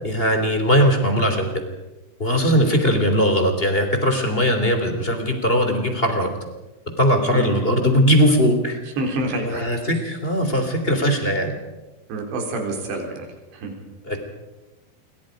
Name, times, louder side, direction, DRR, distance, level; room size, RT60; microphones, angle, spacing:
voice 1, 0.0-1.5 2.2-6.3 7.0-8.8 9.4-11.6 14.0-14.2, equal, 15° left, 5 dB, 2.8 m, -19 dB
voice 2, 7.3-7.6 9.0-9.7 10.5-10.6 12.1-13.3 13.5-13.7, right 2 dB, 85° right, 3 dB, 6.1 m, -27 dB
27.0 x 24.5 x 5.2 m, 1.1 s
omnidirectional pair, 4.9 m